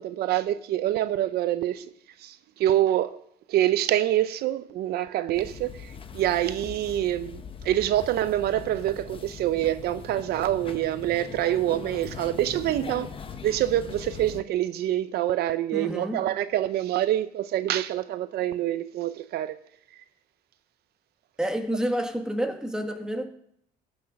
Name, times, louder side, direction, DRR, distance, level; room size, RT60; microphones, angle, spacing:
voice 1, 0.0-1.9 2.2-3.2 3.5-13.1 13.4-19.6, right 13 dB, 70° right, 0.6 m, -26 dB
sound 1, 5.3-14.4, left 6 dB, 30° left, 0.9 m, -41 dB
voice 2, 15.7-16.2 21.4-23.3, equal, 5° right, 1.6 m, -29 dB
15.0 x 6.5 x 6.3 m
cardioid pair, 110°, 17 cm